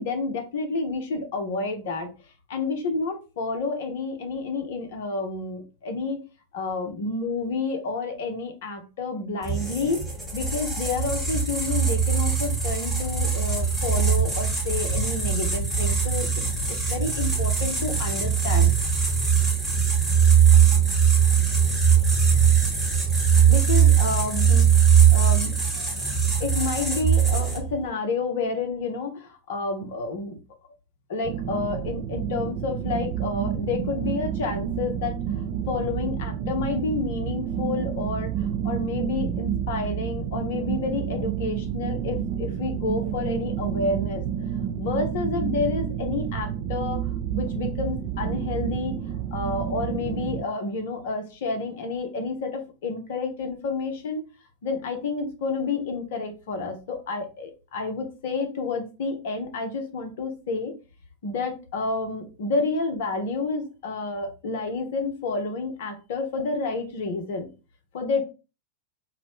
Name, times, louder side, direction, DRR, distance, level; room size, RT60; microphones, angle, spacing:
voice 1, 0.0-2.1 2.5-6.2 6.5-10.0 10.3-16.3 16.7-18.7 23.5-24.7 25.1-25.9 26.4-30.4 31.1-35.1 35.7-44.3 44.8-49.0 49.3-54.2 54.6-60.7 61.2-67.5 67.9-68.2, left 3 dB, 55° left, 6 dB, 0.6 m, -29 dB
sound 1, 9.4-27.8, right 7 dB, 10° right, 0.9 m, -21 dB
sound 2, 31.2-50.4, right 9 dB, 40° right, 0.4 m, -29 dB
2.6 x 2.0 x 2.9 m, 0.31 s
figure-of-eight pair, 90°, 0 cm